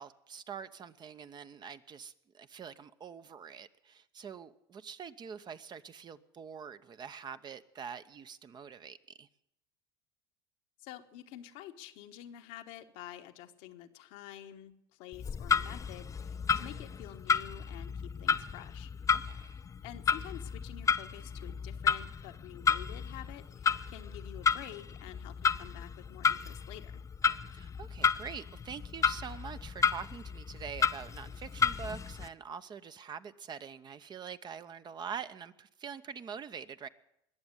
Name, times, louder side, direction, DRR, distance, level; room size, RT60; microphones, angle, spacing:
voice 1, 0.0-9.3 19.1-19.6 27.5-36.9, right 7 dB, 35° right, 0.8 m, -45 dB
voice 2, 10.8-18.9 19.8-27.0, left 12 dB, 70° left, 1.2 m, -49 dB
Clock, 15.1-32.3, left 6 dB, 25° left, 0.6 m, -32 dB
21.0 x 7.1 x 9.7 m
hypercardioid pair, 80°, 12 cm